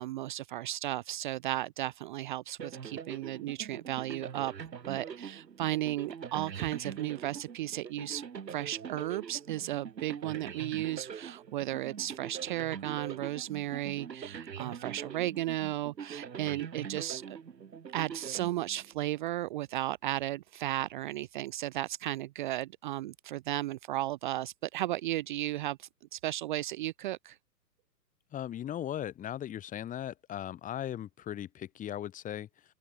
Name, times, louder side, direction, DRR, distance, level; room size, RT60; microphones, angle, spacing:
voice 1, 0.0-4.5 4.9-8.2 8.5-17.4 17.9-27.4, right 15 dB, 30° right, 0.8 m, -34 dB
sound 1, 2.6-19.2, right 7 dB, 80° right, 1.8 m, -43 dB
voice 2, 28.3-32.5, left 11 dB, 15° left, 2.4 m, -38 dB
open air
hypercardioid pair, 130°, 50 cm